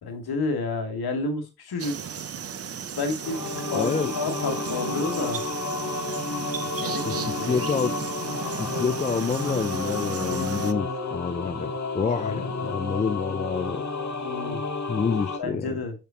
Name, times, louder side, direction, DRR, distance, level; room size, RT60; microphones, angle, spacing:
voice 1, 0.0-2.0 3.0-5.4 6.8-7.6 14.2-14.6 15.4-15.9, left 3 dB, 60° left, 2.2 m, -30 dB
sound 1, 1.8-10.7, right 7 dB, 35° right, 0.7 m, -35 dB
sound 2, 3.2-15.4, left 4 dB, 40° left, 1.6 m, -31 dB
voice 2, 3.7-4.1 7.0-7.9 8.6-13.8 14.9-15.8, left 5 dB, 15° left, 0.4 m, -28 dB
6.8 x 5.8 x 2.9 m
hypercardioid pair, 40°, 43 cm